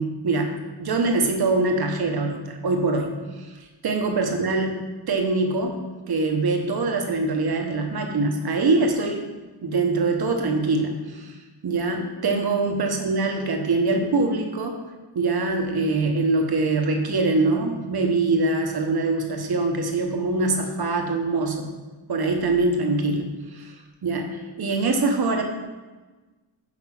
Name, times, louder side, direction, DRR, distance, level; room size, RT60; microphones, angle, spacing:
voice 1, 0.0-3.5 3.8-4.7 5.1-5.8 6.1-9.2 9.6-11.3 11.6-14.8 15.1-21.7 22.1-23.7 24.0-24.3 24.6-25.4, right 3 dB, 55° right, 3 dB, 1.1 m, -23 dB
5.9 x 5.6 x 6.0 m, 1.3 s
wide cardioid pair, 140°, 45 cm